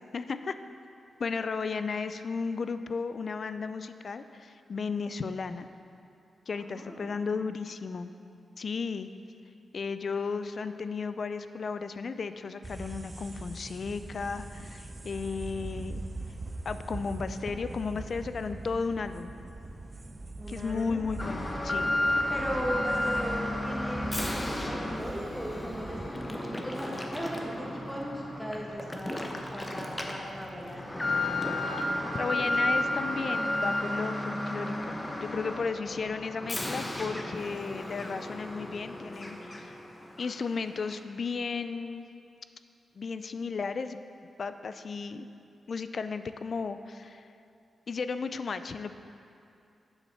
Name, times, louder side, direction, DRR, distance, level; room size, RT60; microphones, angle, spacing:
voice 1, 0.1-0.6 1.2-5.7 6.5-8.1 8.6-9.1 9.7-16.0 16.7-19.3 20.5-21.9 32.1-39.8 40.2-42.1 43.0-44.0 44.4-45.3 45.7-47.3 47.9-48.9, left 5 dB, 55° left, 10 dB, 0.4 m, -34 dB
voice 2, 6.5-7.1 20.4-21.0 22.3-31.0, equal, ahead, -3 dB, 1.6 m, -37 dB
sound 1, 12.6-26.1, right 2 dB, 20° right, 0.6 m, -41 dB
Alarm, 21.2-39.9 40.2-40.3 40.9-41.0, left 1 dB, 20° left, 0.9 m, -33 dB
7.1 x 7.1 x 5.6 m, 2.6 s
cardioid pair, 90°, 0 cm